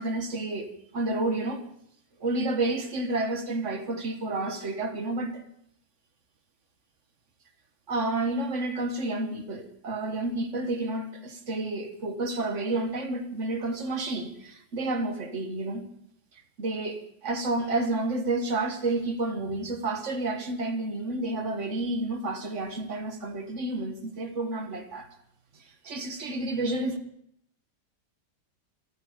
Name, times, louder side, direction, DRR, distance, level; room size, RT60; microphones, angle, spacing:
voice 1, 0.0-1.6 2.2-5.4 7.9-15.8 16.6-25.1 25.8-27.0, right 2 dB, 45° right, 1.7 m, -30 dB
25.5 x 9.4 x 5.1 m
omnidirectional pair, 1.8 m